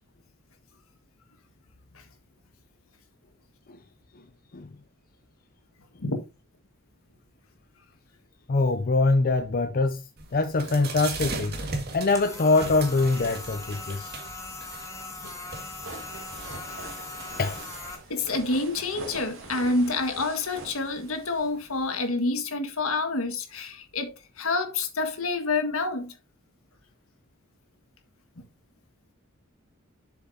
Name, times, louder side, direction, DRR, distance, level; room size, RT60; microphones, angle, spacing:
voice 1, 8.5-11.6 11.9-14.1 16.6-16.8 17.4-17.6, left 3 dB, 45° left, 0.6 m, -24 dB
sound 1, 10.2-22.1, right 3 dB, 50° right, 2.0 m, -40 dB
sound 2, 12.1-17.9, left 3 dB, 15° left, 1.9 m, -40 dB
sound 3, 15.6-21.5, right 2 dB, 65° right, 2.7 m, -44 dB
voice 2, 18.1-26.1 28.4-28.5, left 3 dB, 70° left, 1.7 m, -28 dB
7.4 x 7.3 x 2.8 m
head